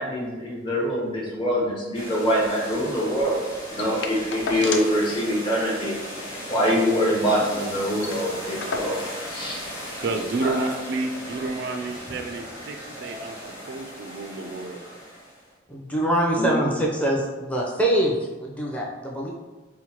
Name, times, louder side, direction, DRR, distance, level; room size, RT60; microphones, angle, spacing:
voice 1, 0.0-3.4 3.7-5.9 6.5-9.0 9.3-9.6 10.4-10.7 16.4-16.6, equal, 25° left, -4 dB, 0.9 m, -24 dB
sound 1, 1.9-15.5, equal, 85° left, 0.9 m, -37 dB
sound 2, 3.8-5.1 5.4-5.5 5.8-5.9 6.3-7.4 7.7-7.8 8.0-9.3 10.1-10.2, left 4 dB, 65° left, 0.4 m, -34 dB
voice 2, 10.0-14.8, right 2 dB, 60° right, 5 dB, 0.3 m, -30 dB
voice 3, 15.7-19.3, right 1 dB, 5° left, -3 dB, 0.5 m, -24 dB
4.4 x 2.1 x 2.9 m, 1.2 s
head